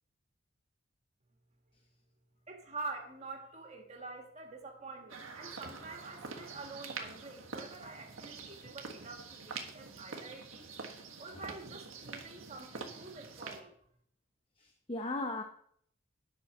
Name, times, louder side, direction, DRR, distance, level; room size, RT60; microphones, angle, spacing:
voice 1, 2.5-10.7 11.2-13.8, right 3 dB, 35° right, 2 dB, 1.8 m, -46 dB
sound 1, 5.1-13.6, right 4 dB, 90° right, 1.6 m, -46 dB
voice 2, 14.6-15.4, left 2 dB, 25° left, 4 dB, 0.7 m, -38 dB
10.5 x 6.1 x 6.2 m, 0.65 s
head